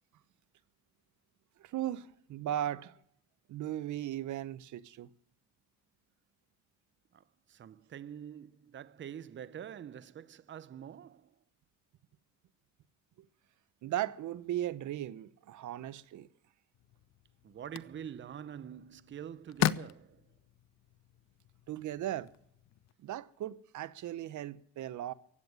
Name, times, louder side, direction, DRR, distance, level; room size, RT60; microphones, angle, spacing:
voice 1, 1.6-3.0 3.5-5.1 13.2-13.3 13.8-16.3 21.7-22.3 23.0-25.1, right 12 dB, 75° right, 0.9 m, -37 dB
voice 2, 7.1-11.3 17.4-20.3, right 9 dB, 40° right, 0.7 m, -46 dB
sound 1, 16.7-22.9, left 11 dB, 60° left, 0.7 m, -39 dB
15.5 x 8.9 x 9.4 m
cardioid pair, 90°, 30 cm